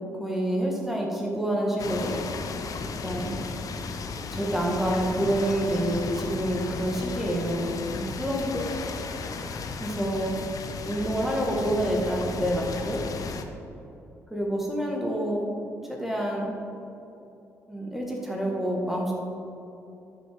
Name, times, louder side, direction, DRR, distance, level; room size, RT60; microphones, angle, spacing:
voice 1, 0.1-2.1 3.0-3.4 4.3-8.7 9.4-10.3 10.8-13.0 14.3-15.5 15.9-16.5 17.7-19.1, right 1 dB, 5° right, -2 dB, 1.8 m, -28 dB
sound 1, 1.8-13.4, left 4 dB, 50° left, 0.7 m, -35 dB
12.0 x 6.3 x 3.7 m, 2.9 s
figure-of-eight pair, 40°, 8 cm